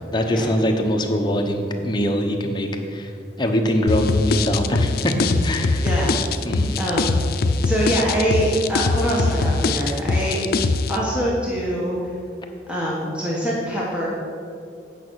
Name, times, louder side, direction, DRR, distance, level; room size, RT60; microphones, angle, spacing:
voice 1, 0.0-3.1 3.4-5.9 6.4-6.8, equal, 25° left, 2 dB, 0.9 m, -22 dB
sound 1, 3.9-11.0, left 3 dB, 60° left, 0.5 m, -22 dB
voice 2, 5.8-6.2 6.8-7.2 7.6-10.4 10.9-12.0 12.7-14.1, right 1 dB, 5° right, -6 dB, 1.3 m, -24 dB
8.9 x 6.1 x 6.3 m, 2.4 s
head